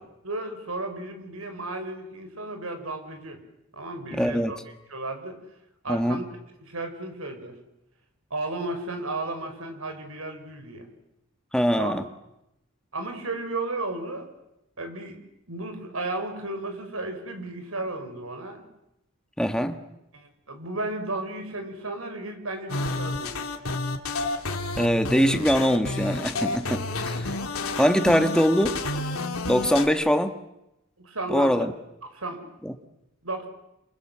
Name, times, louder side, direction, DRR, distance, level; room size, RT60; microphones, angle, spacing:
voice 1, 0.2-3.4 3.7-4.6 4.9-5.4 5.8-6.3 6.6-7.5 8.3-10.9 11.8-12.0 12.9-14.3 14.8-15.2 15.5-18.6 20.1-23.4 31.0-31.7 32.1-32.4 33.2-33.5, right 2 dB, 80° right, 6 dB, 5.8 m, -34 dB
voice 2, 4.1-4.5 5.9-6.2 11.5-12.0 19.4-19.8 24.8-27.3 27.8-28.8 29.5-30.3 31.3-31.7 32.6-32.7, equal, 5° left, 7 dB, 1.6 m, -22 dB
sound 1, 22.7-29.9, left 3 dB, 85° left, 2.8 m, -30 dB
28.5 x 26.5 x 7.7 m, 0.87 s
head